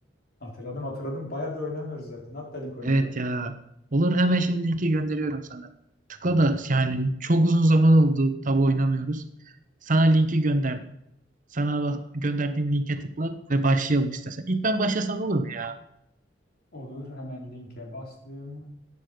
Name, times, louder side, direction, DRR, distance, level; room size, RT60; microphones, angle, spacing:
voice 1, 0.4-3.1 16.7-18.7, left 1 dB, 55° left, -1 dB, 4.4 m, -36 dB
voice 2, 2.8-3.5 3.9-5.7 6.2-9.2 9.8-10.8 11.5-15.8, right 1 dB, 45° right, 9 dB, 1.0 m, -23 dB
14.5 x 9.6 x 5.2 m, 0.78 s
head